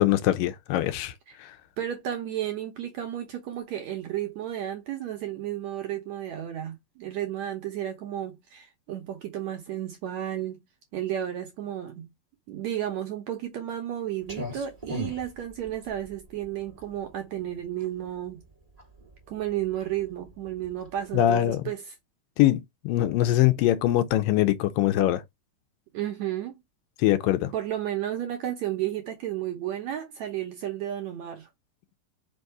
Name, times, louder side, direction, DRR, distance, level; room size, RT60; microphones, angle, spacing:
voice 1, 0.0-1.1 1.4-1.5 21.1-21.6 22.4-25.2 27.0-27.5, left 13 dB, 80° left, 2.2 m, -23 dB
voice 2, 1.8-10.6 10.9-12.1 12.5-18.4 19.3-21.9 25.9-26.5 27.5-31.5, right 11 dB, 70° right, 1.8 m, -32 dB
Clock, 14.2-21.7, equal, 25° right, 0.8 m, -41 dB
5.4 x 4.0 x 4.6 m
omnidirectional pair, 4.2 m